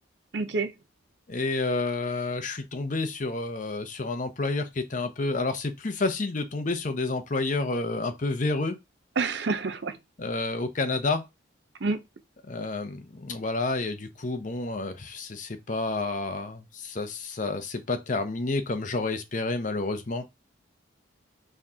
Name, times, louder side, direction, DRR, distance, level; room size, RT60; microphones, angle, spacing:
voice 1, 0.3-0.7 9.2-10.0 11.8-12.0, right 4 dB, 60° right, 0.6 m, -27 dB
voice 2, 1.3-8.8 10.2-11.2 12.5-20.2, left 3 dB, 40° left, 0.7 m, -29 dB
4.4 x 3.6 x 2.8 m
head